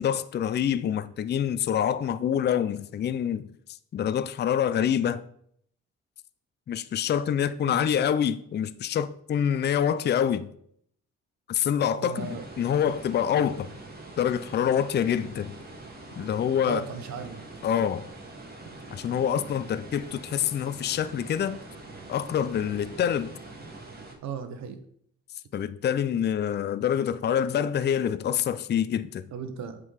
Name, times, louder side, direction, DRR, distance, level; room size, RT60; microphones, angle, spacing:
voice 1, 0.0-3.5 3.9-5.2 6.7-10.5 11.5-13.7 14.2-15.5 16.2-16.8 17.6-18.1 18.9-21.6 22.1-23.3 25.5-29.3, left 9 dB, 35° left, 0.4 m, -26 dB
voice 2, 12.0-12.4 16.7-17.4 24.2-24.8 29.3-29.8, right 6 dB, 65° right, 1.0 m, -36 dB
sound 1, 12.2-24.1, right 2 dB, 30° right, 1.8 m, -44 dB
7.8 x 3.8 x 4.9 m
cardioid pair, 90°, 30 cm